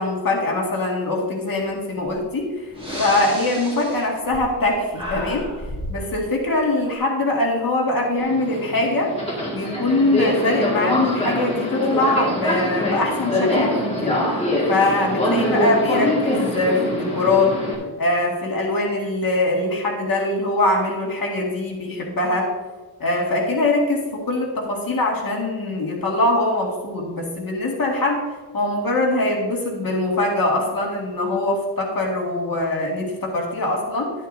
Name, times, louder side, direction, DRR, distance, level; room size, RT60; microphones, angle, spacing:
voice 1, 0.0-2.5 3.0-5.5 5.9-9.1 9.5-14.2 14.7-17.5 18.0-22.5 23.0-28.2 28.5-34.1, left 2 dB, 45° left, -1 dB, 2.1 m, -22 dB
Breathing, 2.1-2.2 2.7-4.7 4.9-6.0, equal, 10° right, 2.5 m, -32 dB
Subway metro underground, 8.2-17.8, left 1 dB, 15° left, 2.0 m, -23 dB
11.0 x 10.5 x 2.7 m, 1.3 s
wide cardioid pair, 180°, 46 cm